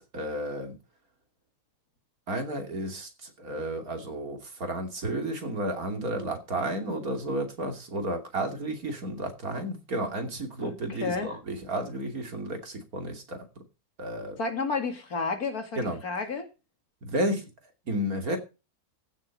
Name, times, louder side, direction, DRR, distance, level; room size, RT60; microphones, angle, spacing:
voice 1, 0.1-0.7 2.3-3.1 3.4-13.4 14.0-14.4 15.8-16.0 17.0-17.5 17.9-18.4, right 1 dB, 70° right, 3.3 m, -32 dB
voice 2, 10.6-11.3 14.4-16.5, left 4 dB, 75° left, 2.9 m, -31 dB
15.0 x 7.6 x 5.4 m
omnidirectional pair, 1.6 m